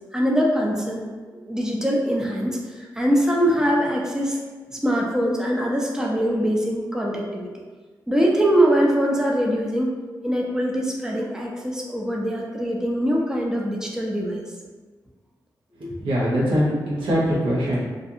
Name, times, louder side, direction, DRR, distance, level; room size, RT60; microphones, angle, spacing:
voice 1, 0.1-1.1 1.4-4.4 4.7-7.5 8.1-10.0 10.2-14.4, equal, 5° right, -1 dB, 0.5 m, -22 dB
voice 2, 15.8-17.9, equal, 85° right, -7 dB, 0.8 m, -23 dB
2.4 x 2.3 x 2.7 m, 1.4 s
cardioid pair, 50°, 8 cm